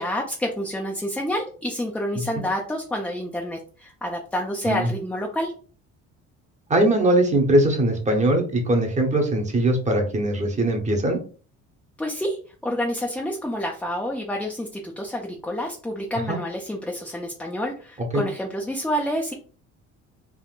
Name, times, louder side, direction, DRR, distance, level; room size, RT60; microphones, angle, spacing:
voice 1, 0.0-5.5 12.0-12.4 12.6-19.3, equal, 5° left, 0 dB, 0.4 m, -28 dB
voice 2, 6.7-11.2 16.3-16.4 18.1-18.2, right 1 dB, 25° right, 3 dB, 0.8 m, -21 dB
3.6 x 2.5 x 2.3 m, 0.39 s
cardioid pair, 110°, 29 cm